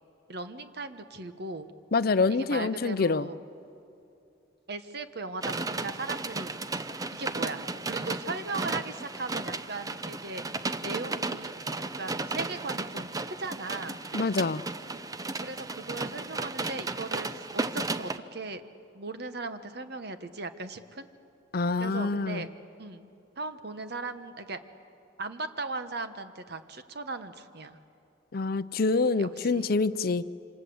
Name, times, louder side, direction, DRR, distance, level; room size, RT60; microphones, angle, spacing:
voice 1, 0.3-1.7 2.3-3.4 4.7-6.8 7.1-10.4 10.8-11.5 11.8-13.1 13.4-14.0 15.4-18.6 18.9-21.1 21.8-22.5 22.8-23.1 23.4-24.6 25.2-27.8 29.2-29.7, right 3 dB, 55° right, 10 dB, 1.3 m, -38 dB
voice 2, 1.9-3.3 14.1-14.6 21.5-22.5 28.3-30.2, left 3 dB, 50° left, 14 dB, 0.6 m, -26 dB
sound 1, 5.4-18.2, right 3 dB, 20° right, 0.6 m, -34 dB
27.0 x 26.0 x 7.9 m, 2.7 s
head